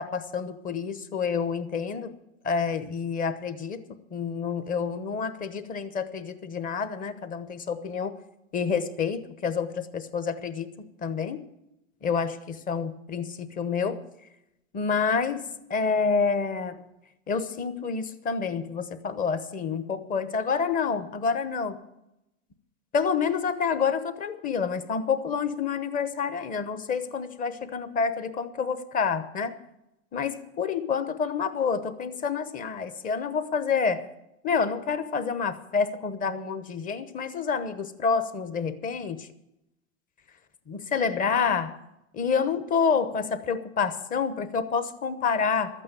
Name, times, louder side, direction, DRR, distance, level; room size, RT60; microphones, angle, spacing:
voice 1, 0.0-2.1 2.4-3.8 4.1-8.1 8.5-11.5 12.0-14.0 14.7-16.9 17.3-21.8 22.9-29.6 30.1-34.1 34.4-39.3 40.7-41.8 42.1-45.8, left 5 dB, 20° left, 11 dB, 0.9 m, -28 dB
13.0 x 8.8 x 9.0 m, 0.87 s
hypercardioid pair, 135°, 40 cm